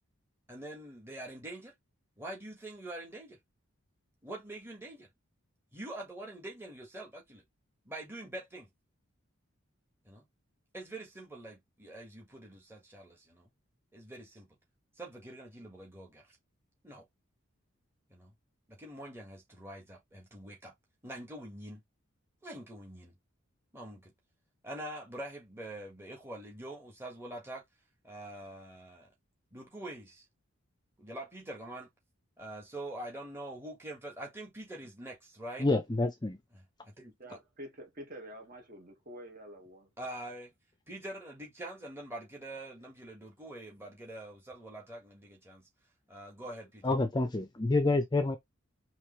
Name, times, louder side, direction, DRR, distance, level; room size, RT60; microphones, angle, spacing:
voice 1, 0.5-1.7 2.2-3.4 4.2-5.1 5.7-7.4 7.9-8.7 10.1-10.3 10.7-13.5 13.9-14.5 15.0-16.4 16.8-17.1 18.1-18.3 18.7-20.7 21.0-21.8 22.4-23.1 23.7-24.1 24.6-27.6 28.0-29.1 29.5-30.2 31.0-31.9 32.4-35.7 36.5-37.4 40.0-40.5 40.9-45.7 46.1-46.8, right 1 dB, 10° right, 1.7 m, -45 dB
voice 2, 35.6-36.4 46.8-48.4, left 2 dB, 20° left, 0.5 m, -28 dB
voice 3, 37.2-39.9, equal, 40° right, 1.8 m, -47 dB
5.0 x 3.2 x 3.2 m
head